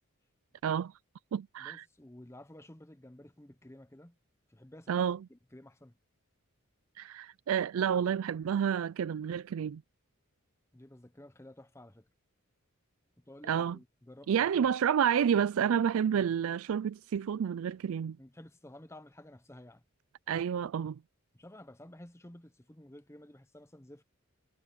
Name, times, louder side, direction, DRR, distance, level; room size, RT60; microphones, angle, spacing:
voice 1, 0.6-0.9 1.3-1.8 4.9-5.2 7.0-9.8 13.4-13.8 14.3-18.2 20.3-21.0, right 8 dB, 70° right, 0.3 m, -29 dB
voice 2, 1.6-4.2 4.5-5.0 5.3-5.9 10.7-12.1 13.2-14.8 16.1-16.3 18.2-19.8 21.3-24.0, left 1 dB, 10° left, 0.9 m, -52 dB
head